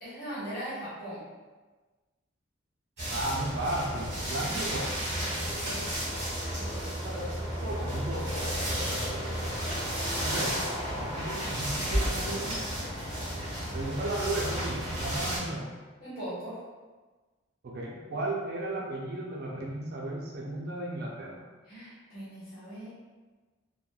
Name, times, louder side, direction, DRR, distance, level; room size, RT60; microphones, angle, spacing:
voice 1, 0.0-1.2 5.4-5.9 6.5-6.9 16.0-16.6 21.6-22.9, equal, 50° left, -11 dB, 1.1 m, -40 dB
sound 1, 3.0-15.4, equal, 35° right, 1.5 m, -32 dB
voice 2, 3.1-5.0 7.0-7.3 7.6-8.4 10.2-10.6 11.0-12.6 13.7-15.7 17.6-21.4, right 1 dB, 55° right, -2 dB, 0.4 m, -34 dB
3.0 x 2.1 x 2.3 m, 1.3 s
head